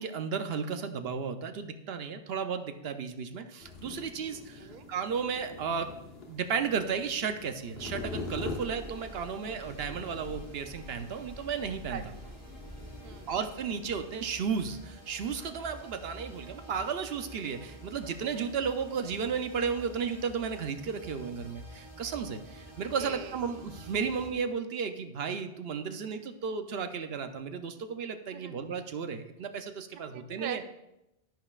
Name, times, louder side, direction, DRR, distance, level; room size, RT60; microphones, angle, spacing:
voice 1, 0.0-5.9 6.3-12.0 13.3-30.6, right 6 dB, 75° right, 8 dB, 0.9 m, -34 dB
sound 1, 3.6-13.3, left 3 dB, 75° left, 1.5 m, -44 dB
sound 2, 7.8-24.3, right 1 dB, 30° right, 1.2 m, -48 dB
voice 2, 11.9-12.4 13.0-13.3 23.0-23.5 28.3-28.6 30.1-30.6, right 9 dB, 55° right, 9 dB, 0.6 m, -42 dB
11.0 x 10.5 x 2.4 m, 0.89 s
omnidirectional pair, 1.0 m